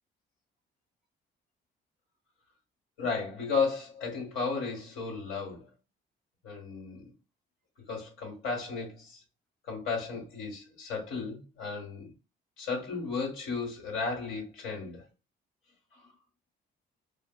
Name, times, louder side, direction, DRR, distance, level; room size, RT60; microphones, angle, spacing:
voice 1, 3.0-5.6 6.4-7.1 7.9-9.2 9.7-12.1 12.6-15.0 15.9-16.1, left 4 dB, 85° left, 1.7 m, -34 dB
4.8 x 2.1 x 2.3 m
cardioid pair, 90°, 20 cm